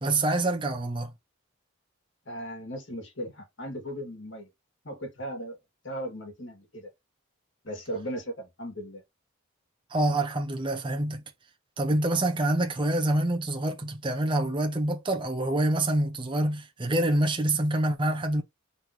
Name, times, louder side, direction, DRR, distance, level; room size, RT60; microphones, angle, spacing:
voice 1, 0.0-1.1 9.9-11.2 11.8-18.4, right 1 dB, 25° right, 0.7 m, -26 dB
voice 2, 2.3-4.5 4.8-5.6 5.8-6.9 7.6-9.0, equal, 55° left, 2.2 m, -37 dB
4.0 x 3.1 x 4.3 m
head